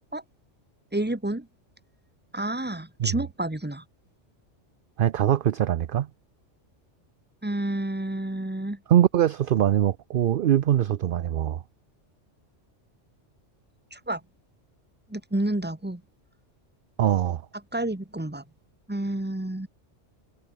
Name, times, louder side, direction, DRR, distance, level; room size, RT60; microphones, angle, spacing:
voice 1, 0.9-1.5 2.3-3.8 7.4-8.8 13.9-14.2 15.1-16.0 17.7-18.4 18.9-19.7, right 1 dB, 10° right, 1.5 m, -29 dB
voice 2, 5.0-6.1 8.9-11.6 17.0-17.4, right 11 dB, 60° right, 0.6 m, -22 dB
omnidirectional pair, 1.2 m